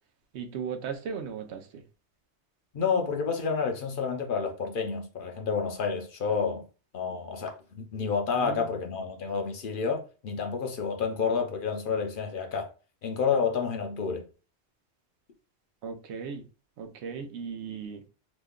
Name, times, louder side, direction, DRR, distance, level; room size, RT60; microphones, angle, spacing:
voice 1, 0.3-1.8 8.3-8.8 15.8-16.5 16.8-18.0, right 6 dB, 85° right, 0.9 m, -37 dB
voice 2, 2.7-6.6 6.9-12.7 13.0-14.2, left 5 dB, 60° left, 0.7 m, -29 dB
3.0 x 2.2 x 3.5 m
omnidirectional pair, 1.1 m